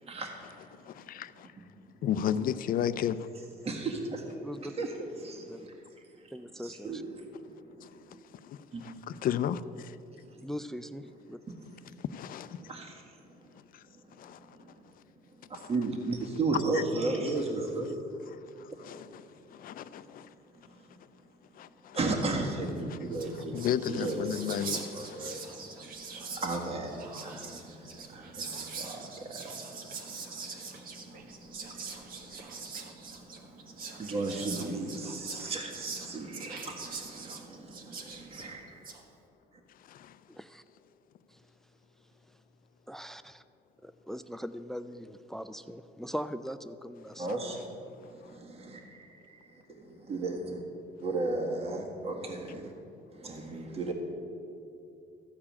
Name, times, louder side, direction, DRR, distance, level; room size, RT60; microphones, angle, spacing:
voice 1, 0.0-0.5 1.4-1.5 3.6-4.5 4.8-5.7 6.1-6.2 6.6-7.3 8.0-8.2 8.7-8.9 10.3-10.4 11.9-12.0 12.6-13.0 14.0-14.8 15.5-18.3 20.8-21.0 21.9-24.4 24.9-38.9 47.2-47.7 48.0-50.6 51.0-52.7 53.1-53.9, right 3 dB, 35° right, 1.7 m, -36 dB
voice 2, 0.8-1.5 2.0-3.3 7.8-7.9 8.4-10.0 12.0-12.6 13.5-13.8 14.2-14.4 15.5-15.7 16.5-16.8 18.6-19.2 19.5-20.3 21.6-22.0 22.9-23.0 23.5-25.4 39.9-40.2, left 9 dB, 55° left, 0.5 m, -34 dB
voice 3, 4.4-4.7 5.5-5.7 6.3-7.0 10.4-11.4 40.3-40.6 42.9-43.4 43.8-47.3, equal, ahead, 0.4 m, -40 dB
Whispering, 22.8-22.9 23.0-39.0, right 4 dB, 60° right, 1.4 m, -43 dB
14.0 x 4.8 x 8.6 m
cardioid pair, 110°, 17 cm